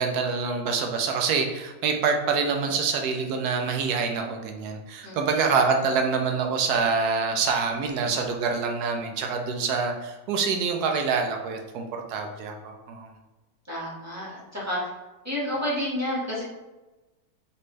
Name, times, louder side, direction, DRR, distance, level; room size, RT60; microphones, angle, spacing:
voice 1, 0.0-13.1, right 5 dB, 85° right, 3 dB, 1.2 m, -26 dB
voice 2, 5.0-5.4 13.7-14.8 15.2-16.4, equal, 10° right, -7 dB, 1.3 m, -30 dB
4.1 x 3.3 x 3.1 m, 1.1 s
omnidirectional pair, 1.6 m